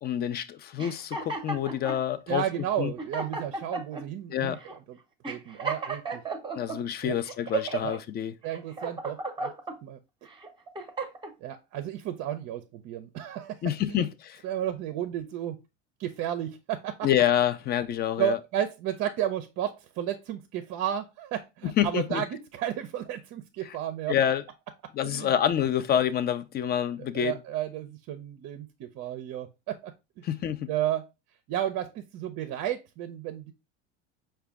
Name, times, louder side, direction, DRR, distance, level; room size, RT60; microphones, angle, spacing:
voice 1, 0.0-2.4 2.8-2.9 4.3-4.6 6.6-8.3 13.6-14.4 17.0-18.4 21.8-22.2 24.1-24.4 25.0-27.3 30.2-30.7, left 10 dB, 25° left, 0.4 m, -27 dB
sound 1, 0.8-2.0 2.6-2.7 3.0-4.0 4.6-4.8 5.2-6.8 7.3-8.0 8.5-9.8 10.3-11.3, right 4 dB, 15° right, 0.7 m, -34 dB
voice 2, 2.3-5.0 5.3-6.2 7.0-7.2 7.8-7.9 8.4-9.5 9.8-10.0 11.4-13.6 13.9-14.0 14.4-15.6 16.0-17.1 18.2-24.1 25.0-25.3 27.1-30.2 30.7-31.1 31.5-33.5, right 11 dB, 45° right, 0.5 m, -33 dB
4.8 x 2.3 x 3.4 m
hypercardioid pair, 90°, 37 cm